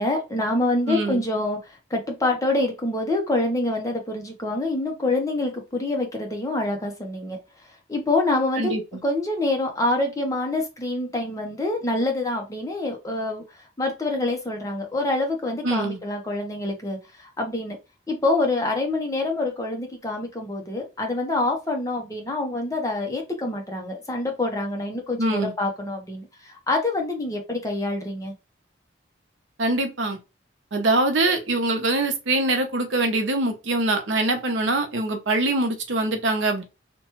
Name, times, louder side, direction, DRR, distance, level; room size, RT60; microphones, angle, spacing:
voice 1, 0.0-7.4 7.9-8.7 9.0-13.4 13.8-17.8 18.1-28.3, left 2 dB, 15° left, 0.7 m, -26 dB
voice 2, 0.9-1.2 8.6-9.0 15.6-16.0 25.2-25.5 29.6-30.2 30.7-36.6, right 2 dB, 85° right, 0.7 m, -23 dB
2.9 x 2.2 x 2.9 m
head